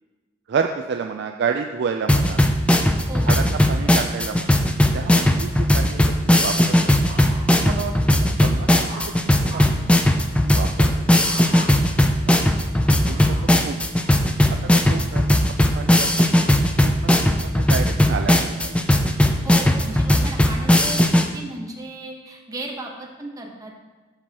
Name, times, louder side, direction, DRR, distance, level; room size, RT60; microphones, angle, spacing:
voice 1, 0.5-2.4 3.3-4.6 4.9-7.0 7.6-8.7 9.1-10.0 10.4-11.0 12.9-13.4 13.7-13.8 14.5-16.5 16.8-17.1 17.4-19.0, right 6 dB, 65° right, 5 dB, 0.3 m, -30 dB
sound 1, 2.1-21.3, left 1 dB, 5° left, 0.4 m, -18 dB
voice 2, 3.1-3.5 19.4-21.0 21.3-23.7, right 2 dB, 20° right, 1 dB, 0.9 m, -35 dB
sound 2, 7.0-7.7 8.2-9.9 11.2-11.7 12.3-14.3 14.9-15.3, right 2 dB, 45° right, 1.6 m, -41 dB
12.5 x 4.6 x 2.9 m, 1.3 s
head